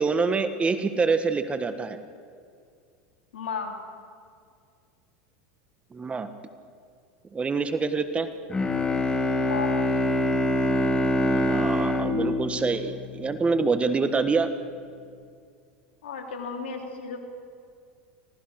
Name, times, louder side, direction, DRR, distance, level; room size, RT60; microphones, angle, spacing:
voice 1, 0.0-2.0 5.9-6.3 7.3-8.3 11.3-14.5, right 4 dB, 20° right, 10 dB, 1.4 m, -26 dB
voice 2, 3.3-3.8 9.4-9.9 16.0-17.2, left 5 dB, 85° left, 2 dB, 3.5 m, -34 dB
Bowed string instrument, 8.5-13.5, left 1 dB, 15° left, 2.7 m, -25 dB
25.0 x 18.5 x 6.5 m, 2.2 s
hypercardioid pair, 105°, 6 cm